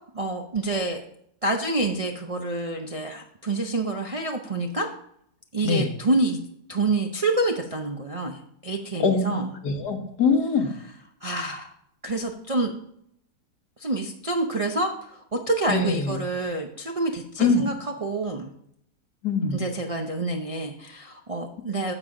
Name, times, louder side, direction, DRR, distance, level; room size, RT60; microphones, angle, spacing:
voice 1, 0.1-1.0 1.4-4.9 5.5-6.4 6.7-9.4 11.2-11.7 12.0-12.7 13.8-18.5 19.5-21.9, right 2 dB, 45° right, 2 dB, 0.4 m, -27 dB
voice 2, 9.0-9.4 9.6-10.7 15.7-16.2 17.4-17.6 19.2-19.6, left 4 dB, 75° left, 4 dB, 1.8 m, -23 dB
9.7 x 7.2 x 3.8 m, 0.71 s
omnidirectional pair, 1.8 m